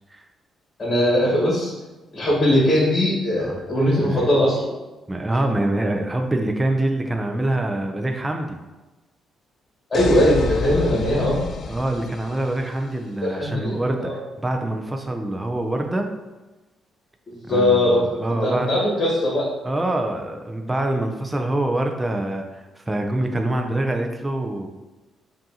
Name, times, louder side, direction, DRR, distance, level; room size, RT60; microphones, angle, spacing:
voice 1, 0.8-1.7 2.1-4.7 9.9-11.4 13.2-13.7 14.0-14.1 17.5-18.0 18.4-19.4, left 1 dB, 35° left, -5 dB, 1.4 m, -20 dB
voice 2, 5.1-8.6 11.7-16.1 17.5-18.7 19.6-24.7, right 1 dB, 15° right, 3 dB, 0.4 m, -25 dB
sound 1, 9.9-12.8, left 4 dB, 55° left, 0.3 m, -29 dB
5.2 x 2.6 x 2.8 m, 1.1 s
cardioid pair, 90°, 0 cm